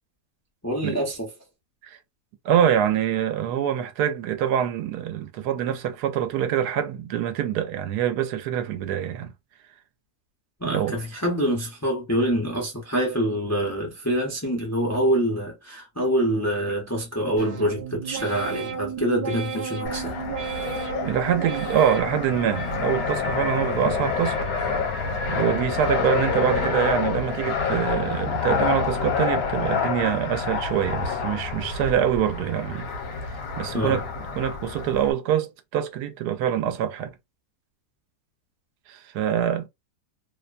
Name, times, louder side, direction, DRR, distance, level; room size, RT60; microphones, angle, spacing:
voice 1, 0.6-1.3 10.6-20.2 33.7-34.0, equal, 20° left, 0.4 m, -25 dB
voice 2, 2.4-9.3 10.6-11.0 21.0-24.4 25.3-32.9 33.3-34.1 34.4-37.1 38.9-39.7, right 9 dB, 85° right, 1.1 m, -25 dB
sound 1, 17.4-23.2 23.6-24.3 24.7-25.4 25.8-26.4 26.9-27.5 28.0-28.5, right 7 dB, 55° right, 0.5 m, -35 dB
Fixed-wing aircraft airplane, 19.9-35.1, left 5 dB, 70° left, 1.2 m, -28 dB
2.8 x 2.1 x 2.4 m
omnidirectional pair, 1.7 m